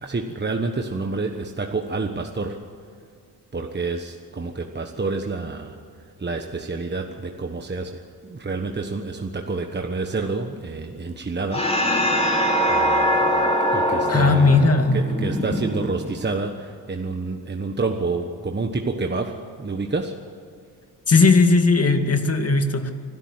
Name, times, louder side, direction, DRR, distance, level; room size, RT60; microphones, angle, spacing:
voice 1, 0.0-2.7 3.5-11.7 12.7-20.2, right 3 dB, 25° right, 4 dB, 1.3 m, -29 dB
sound 1, 11.5-16.3, equal, 15° left, 3.0 m, -22 dB
voice 2, 14.1-14.9 21.1-22.9, left 3 dB, 40° left, 6 dB, 2.2 m, -17 dB
24.5 x 13.0 x 8.1 m, 2.3 s
cardioid pair, 90°, 39 cm